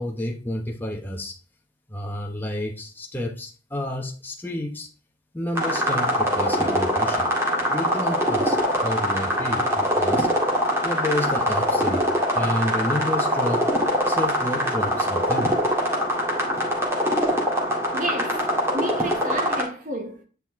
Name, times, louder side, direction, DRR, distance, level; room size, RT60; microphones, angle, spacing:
voice 1, 0.0-1.4 1.9-4.9 5.3-7.3 7.7-10.3 10.8-12.1 12.3-13.7 14.1-15.6, left 1 dB, 10° left, 1.0 m, -30 dB
sound 1, 5.6-19.6, equal, 15° right, 2.0 m, -23 dB
voice 2, 17.9-18.4 18.7-20.2, right 1 dB, 40° right, 1.1 m, -31 dB
9.8 x 4.4 x 3.6 m
head